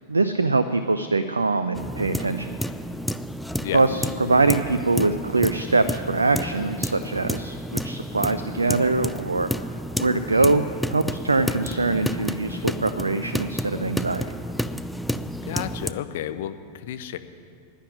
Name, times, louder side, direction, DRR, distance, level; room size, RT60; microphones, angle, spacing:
voice 1, 0.1-2.6 3.7-9.5 10.0-10.6 10.9-14.2, right 3 dB, 80° right, 11 dB, 0.5 m, -23 dB
sound 1, 1.7-15.9, equal, ahead, 0.4 m, -31 dB
voice 2, 15.4-17.2, left 11 dB, 55° left, 10 dB, 0.7 m, -31 dB
11.5 x 9.9 x 9.8 m, 2.3 s
figure-of-eight pair, 90°, 0 cm